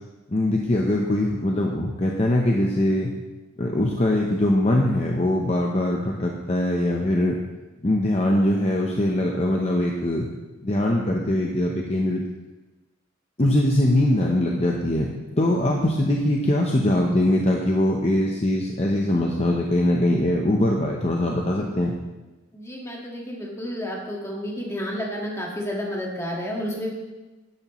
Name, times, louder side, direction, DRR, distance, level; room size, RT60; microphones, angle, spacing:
voice 1, 0.3-3.1 3.6-7.4 7.8-10.3 10.6-12.2 13.4-15.1 15.4-21.9, left 1 dB, 30° left, 0 dB, 0.8 m, -22 dB
voice 2, 22.5-26.9, equal, 15° left, -2 dB, 1.7 m, -31 dB
11.5 x 11.0 x 3.1 m, 1.1 s
head